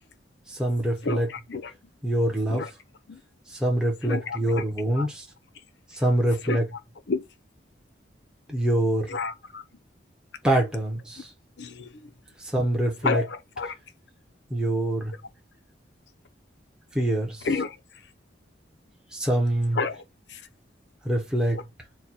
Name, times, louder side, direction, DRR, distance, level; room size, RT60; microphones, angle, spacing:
voice 1, 0.5-1.3 2.0-2.7 3.5-5.3 5.9-6.7 8.5-9.2 10.4-11.3 12.4-13.2 14.5-15.1 16.9-17.5 19.1-19.8 21.0-21.6, right 1 dB, 5° right, 0.8 m, -25 dB
voice 2, 1.0-1.7 2.5-2.7 3.1-3.2 4.0-4.6 5.0-5.1 6.4-6.6 7.1-7.2 9.1-9.6 10.6-10.7 11.6-12.1 13.0-13.7 17.4-17.8 19.7-20.0 20.3-20.4 21.5-21.6, left 4 dB, 65° left, 0.6 m, -30 dB
4.3 x 2.2 x 4.3 m
head